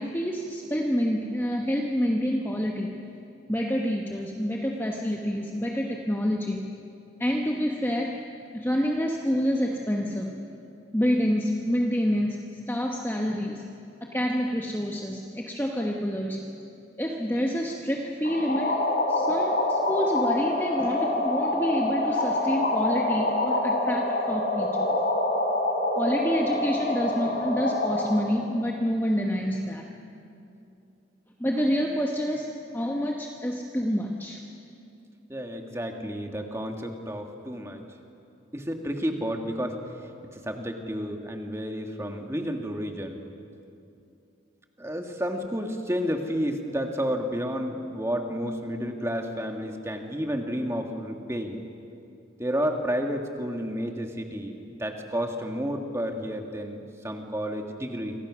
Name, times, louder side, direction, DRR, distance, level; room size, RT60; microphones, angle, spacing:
voice 1, 0.0-3.0 3.5-6.6 7.2-8.2 8.5-10.3 10.9-13.7 14.0-16.5 17.0-18.8 19.1-25.0 25.9-29.8 31.4-34.4, equal, 10° left, 1 dB, 1.2 m, -28 dB
sound 1, 18.2-28.2, left 2 dB, 50° left, 3.5 m, -26 dB
voice 2, 35.3-37.8 38.5-39.8 40.3-43.2 44.8-51.6 52.4-56.8 57.0-58.1, equal, 15° right, 3 dB, 1.8 m, -31 dB
28.0 x 24.5 x 6.3 m, 2.7 s
head